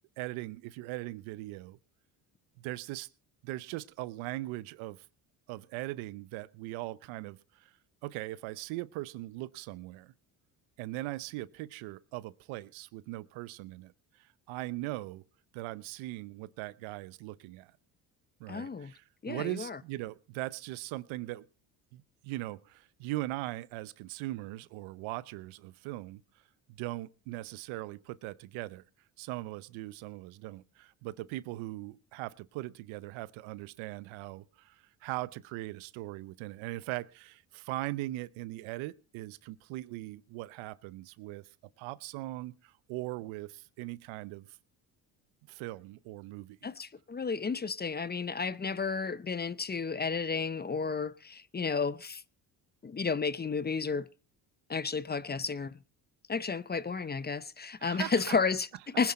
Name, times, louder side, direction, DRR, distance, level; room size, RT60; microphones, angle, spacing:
voice 1, 0.2-1.8 2.6-3.1 3.4-5.0 5.5-7.7 8.0-10.1 10.8-13.9 14.2-15.2 15.5-17.7 18.4-21.5 21.9-26.2 26.7-28.8 29.2-41.5 41.8-44.5 45.5-46.6 57.8-58.3, right 18 dB, 85° right, 0.9 m, -40 dB
voice 2, 18.5-18.9 19.2-19.8 46.6-52.2 52.8-54.1 54.7-55.8 56.3-59.1, left 5 dB, 20° left, 0.6 m, -32 dB
19.5 x 10.5 x 4.3 m
supercardioid pair, 75°, 46 cm